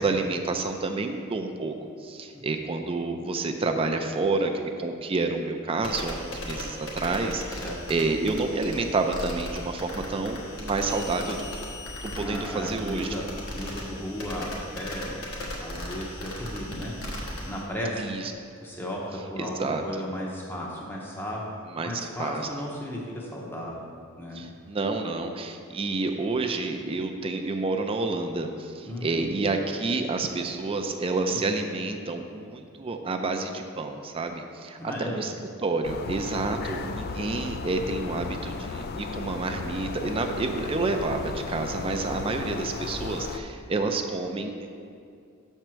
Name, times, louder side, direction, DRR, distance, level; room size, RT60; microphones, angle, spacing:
voice 1, 0.0-7.6 7.9-11.7 12.0-13.1 18.0-18.3 19.4-19.8 21.7-21.9 22.2-22.5 24.3-35.3 35.6-44.5, right 3 dB, 25° right, 5 dB, 0.4 m, -29 dB
sound 1, 5.8-17.6, left 1 dB, 65° left, 1.4 m, -37 dB
voice 2, 12.2-13.2 13.5-15.2 15.6-16.9 17.4-18.1 18.6-21.4 21.8-23.9 24.2-24.4 28.8-29.3 34.8-35.2, equal, 10° left, -3 dB, 0.7 m, -35 dB
sound 2, 35.8-43.4, left 4 dB, 45° left, 0.3 m, -35 dB
6.5 x 4.5 x 6.1 m, 2.4 s
head